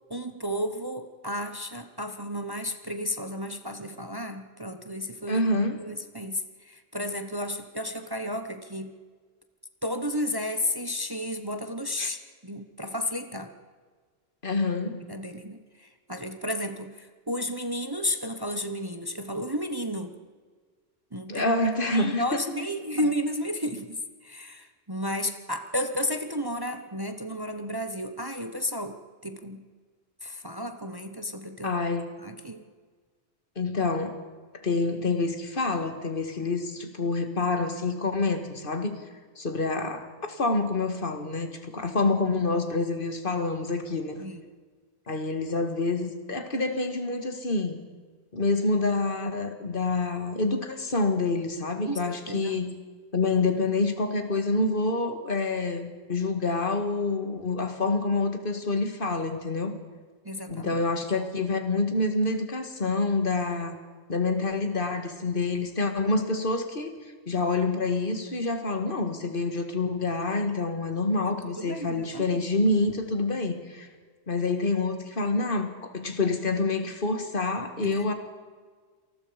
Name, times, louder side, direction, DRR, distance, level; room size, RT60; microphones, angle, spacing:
voice 1, 0.1-5.5 5.8-8.9 9.8-13.5 15.1-20.1 21.1-29.6 30.2-31.8 32.2-32.7 44.2-44.4 51.9-52.6 60.2-60.9 71.3-72.4 77.8-78.1, left 1 dB, 20° right, 8 dB, 1.1 m, -33 dB
voice 2, 5.3-5.8 12.0-12.1 14.4-15.0 21.3-22.4 31.6-32.1 33.6-34.2 34.5-39.0 39.4-44.2 45.1-47.8 48.3-52.7 53.1-59.8 60.5-63.8 64.1-66.9 67.3-73.9 74.3-78.1, left 3 dB, 45° left, 7 dB, 2.2 m, -27 dB
28.0 x 19.5 x 5.2 m, 1.5 s
omnidirectional pair, 1.3 m